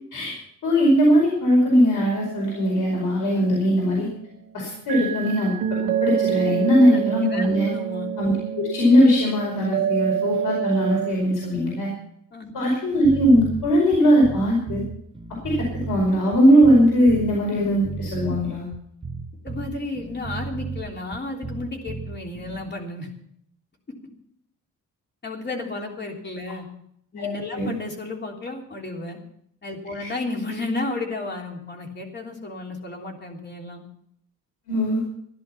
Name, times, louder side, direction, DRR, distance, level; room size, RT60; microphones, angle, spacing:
voice 1, 0.6-4.1 4.5-7.7 8.2-11.9 12.5-14.8 15.4-18.6 27.2-27.7 30.0-30.1 34.7-35.0, equal, 70° left, -2 dB, 5.1 m, -20 dB
sound 1, 1.6-4.4 4.9-11.1, right 9 dB, 80° right, 2.4 m, -28 dB
voice 2, 7.2-8.1 12.3-12.5 19.4-23.1 25.2-26.7 27.1-29.2 29.6-33.8, left 2 dB, 30° left, 1 dB, 3.3 m, -32 dB
sound 2, 13.0-22.7, right 4 dB, 15° right, 1.0 m, -34 dB
15.5 x 11.0 x 5.8 m, 0.70 s
cardioid pair, 135°, 33 cm